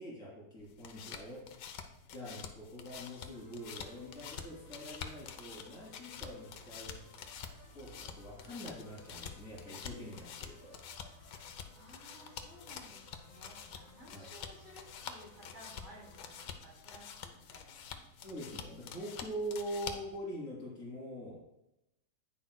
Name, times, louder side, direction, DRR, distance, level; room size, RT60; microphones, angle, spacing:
voice 1, 0.0-1.5 2.1-7.1 7.7-10.7 14.1-14.3 18.2-21.5, equal, 45° left, -4 dB, 3.0 m, -44 dB
sound 1, 0.6-20.2, left 7 dB, 90° left, 1.5 m, -48 dB
sound 2, 2.8-16.5, left 1 dB, 65° left, 3.6 m, -59 dB
voice 2, 11.7-18.0, equal, 40° right, -5 dB, 3.5 m, -56 dB
10.0 x 9.6 x 2.2 m, 0.89 s
omnidirectional pair, 1.9 m